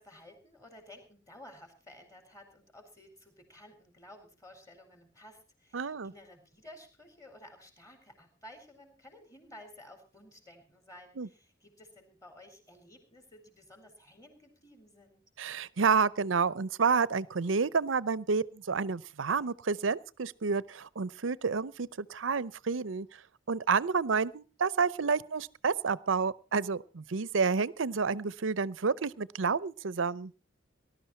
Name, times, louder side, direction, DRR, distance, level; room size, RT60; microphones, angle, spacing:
voice 1, 0.0-15.2, left 1 dB, 15° left, 5 dB, 4.5 m, -54 dB
voice 2, 5.7-6.1 11.2-11.3 15.4-23.2 23.5-30.3, right 5 dB, 80° right, 20 dB, 0.7 m, -29 dB
19.5 x 12.0 x 4.4 m, 0.34 s
head